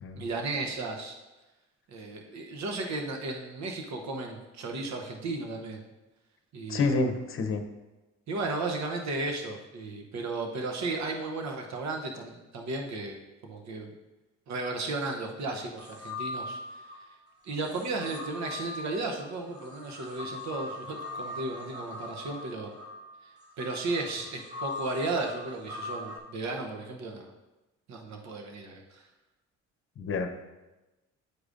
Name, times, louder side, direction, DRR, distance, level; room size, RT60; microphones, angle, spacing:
voice 1, 0.2-1.2 1.9-5.8 6.5-6.9 8.3-13.2 13.4-13.9 14.5-16.8 17.4-22.7 23.6-27.3 27.9-29.0, right 3 dB, 65° right, 2 dB, 0.9 m, -34 dB
voice 2, 6.7-7.6 30.0-30.3, left 3 dB, 45° left, 7 dB, 0.8 m, -28 dB
sound 1, 15.8-17.0 17.6-26.2, left 2 dB, 15° right, 1.4 m, -41 dB
9.5 x 4.8 x 2.6 m, 1.1 s
cardioid pair, 90°, 30 cm